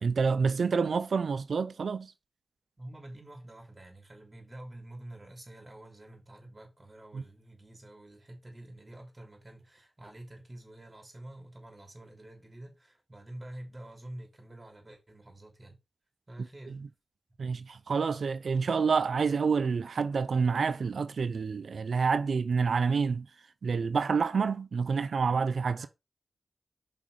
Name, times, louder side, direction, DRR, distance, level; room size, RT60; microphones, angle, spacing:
voice 1, 0.0-2.1 7.1-7.2 17.4-23.3 23.6-25.9, right 5 dB, 85° right, 0.6 m, -28 dB
voice 2, 2.8-15.8 16.3-16.8 25.8-25.9, right 1 dB, 30° right, 3.0 m, -48 dB
5.6 x 5.1 x 4.8 m
cardioid pair, 55°, 0 cm